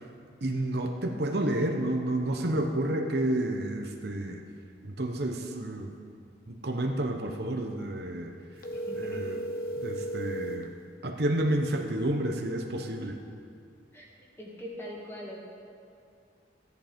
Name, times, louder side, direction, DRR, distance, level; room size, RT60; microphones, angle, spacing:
voice 1, 0.4-4.4 4.8-5.9 6.5-8.3 8.9-9.4 9.8-10.7 11.0-13.2, right 1 dB, 60° right, 3 dB, 0.9 m, -30 dB
sound 1, 8.6-10.7, right 1 dB, 50° left, 1.2 m, -34 dB
voice 2, 8.7-9.4 13.9-14.1 14.4-15.4, equal, 15° left, -4 dB, 2.2 m, -42 dB
14.0 x 10.5 x 5.2 m, 2.4 s
head